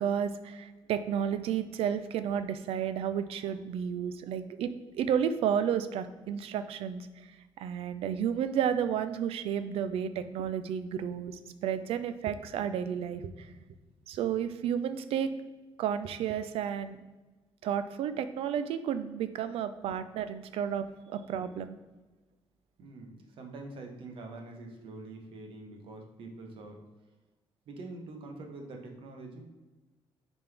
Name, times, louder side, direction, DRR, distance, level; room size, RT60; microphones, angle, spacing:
voice 1, 0.0-7.1 7.6-13.5 14.1-15.3 15.8-17.0 17.6-21.7, right 8 dB, 90° right, 11 dB, 0.5 m, -32 dB
voice 2, 22.8-26.8 27.7-29.5, right 2 dB, 65° right, 3 dB, 1.1 m, -45 dB
6.8 x 4.2 x 3.4 m, 1.2 s
cardioid pair, 155°, 10 cm